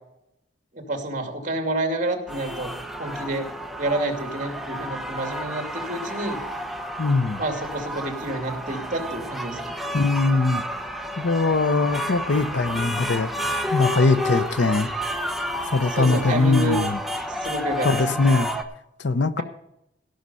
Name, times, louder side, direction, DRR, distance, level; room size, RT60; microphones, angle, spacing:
voice 1, 0.7-2.7 3.0-3.5 3.8-6.4 7.4-9.7 15.9-16.8 17.4-18.2, right 1 dB, 45° right, 2.4 m, -28 dB
sound 1, 2.3-18.6, equal, ahead, 0.9 m, -31 dB
voice 2, 7.0-7.4 9.9-10.6 11.2-13.3 13.7-14.9 15.7-17.0 17.8-18.5 19.0-19.4, left 3 dB, 85° left, 0.8 m, -21 dB
17.0 x 6.6 x 5.6 m
head